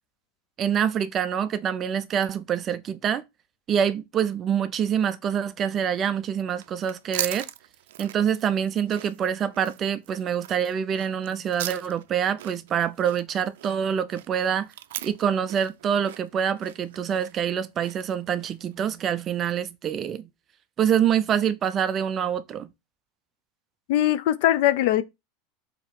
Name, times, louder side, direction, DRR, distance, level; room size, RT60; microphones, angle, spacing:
voice 1, 0.6-3.2 3.7-7.5 8.0-14.7 15.0-20.3 20.8-22.7, right 8 dB, 25° right, 0.4 m, -26 dB
sound 1, 6.5-18.8, right 13 dB, 85° right, 0.4 m, -39 dB
voice 2, 23.9-25.0, left 13 dB, 60° left, 0.6 m, -21 dB
6.9 x 2.9 x 5.1 m
supercardioid pair, 165°, 0 cm